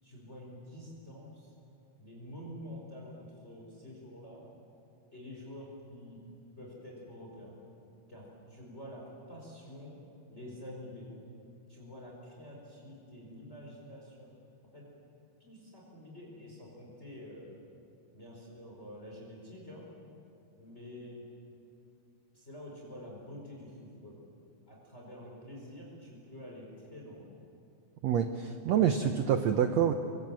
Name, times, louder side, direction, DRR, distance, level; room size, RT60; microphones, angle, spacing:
voice 1, 0.0-1.5 2.0-4.5 5.1-6.2 6.6-7.5 8.1-9.9 10.3-11.2 11.7-14.3 14.7-14.9 15.4-17.6 18.1-19.9 20.6-21.3 22.3-24.2 24.7-27.3, left 1 dB, 15° left, -2 dB, 4.8 m, -48 dB
voice 2, 28.0-29.9, right 8 dB, 80° right, 7 dB, 1.5 m, -27 dB
27.5 x 24.0 x 7.7 m, 2.6 s
omnidirectional pair, 4.3 m